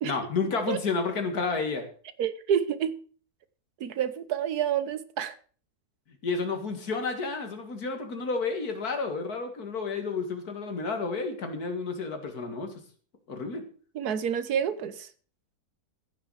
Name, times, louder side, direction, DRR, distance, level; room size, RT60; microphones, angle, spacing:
voice 1, 0.0-1.9 6.2-12.7 13.3-13.6, left 4 dB, 80° left, 2.6 m, -31 dB
voice 2, 2.2-3.0 3.8-5.4 13.9-15.1, right 8 dB, 90° right, 1.5 m, -28 dB
14.5 x 6.7 x 6.4 m
omnidirectional pair, 1.6 m